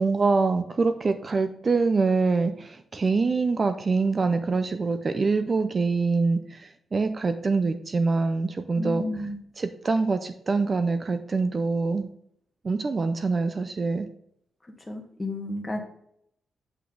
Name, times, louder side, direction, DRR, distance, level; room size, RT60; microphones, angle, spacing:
voice 1, 0.0-9.0 9.6-12.1 12.6-14.1, right 4 dB, 35° right, 9 dB, 0.5 m, -25 dB
voice 2, 8.8-9.4 14.9-15.8, left 1 dB, 20° left, 2 dB, 1.7 m, -32 dB
8.1 x 5.9 x 3.8 m, 0.71 s
wide cardioid pair, 120°, 0 cm